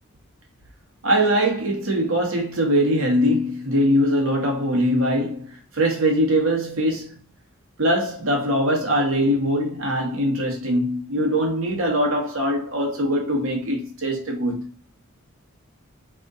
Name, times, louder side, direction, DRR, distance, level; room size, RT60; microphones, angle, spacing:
voice 1, 1.0-7.2 7.8-14.7, equal, 70° right, 1.3 m, -22 dB
3.5 x 2.6 x 3.7 m
head